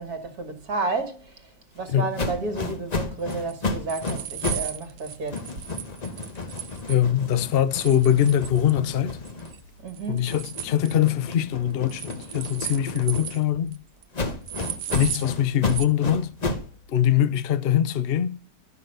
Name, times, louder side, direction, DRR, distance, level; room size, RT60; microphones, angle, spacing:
voice 1, 0.0-1.4 1.8-5.5 9.8-10.3, right 3 dB, 60° right, 2.1 m, -31 dB
sound 1, 2.1-4.7 5.0-9.8 10.2-13.6 14.1-16.7, left 3 dB, 30° left, 0.9 m, -32 dB
sound 2, 3.3-7.0 7.8-9.0 9.2-9.6 9.9-11.0 11.9-13.4 13.7-13.8 14.0-14.1 14.5-15.3 15.7-15.9, right 11 dB, 75° right, 1.3 m, -36 dB
voice 2, 6.9-9.2 10.1-13.8 14.9-16.3 16.9-18.3, left 10 dB, 65° left, 0.5 m, -22 dB
12.0 x 6.1 x 7.7 m
omnidirectional pair, 1.9 m